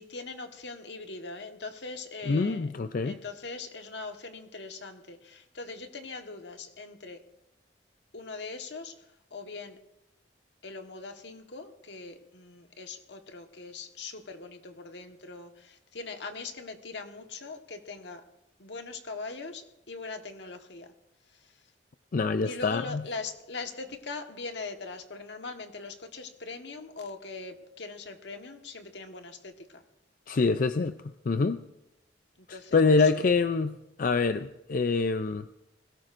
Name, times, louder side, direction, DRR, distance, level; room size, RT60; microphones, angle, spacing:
voice 1, 0.0-2.7 3.0-7.2 8.1-9.8 10.6-18.3 18.6-20.9 21.3-21.6 22.4-29.8 32.4-33.3, left 4 dB, 75° left, 5 dB, 1.4 m, -41 dB
voice 2, 2.3-3.2 22.1-23.0 30.3-31.0 31.3-31.6 32.5-35.5, left 4 dB, 50° left, 10 dB, 0.4 m, -25 dB
21.0 x 17.0 x 2.6 m, 0.89 s
head